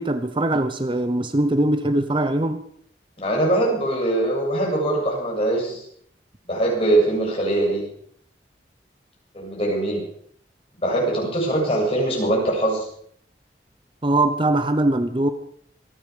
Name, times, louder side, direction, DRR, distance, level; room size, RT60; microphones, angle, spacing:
voice 1, 0.0-2.7 14.0-15.3, right 1 dB, 30° right, 0.8 m, -21 dB
voice 2, 3.2-5.8 6.5-7.8 9.3-10.0 10.8-12.9, right 1 dB, 35° left, 7.4 m, -22 dB
25.5 x 10.0 x 5.2 m
head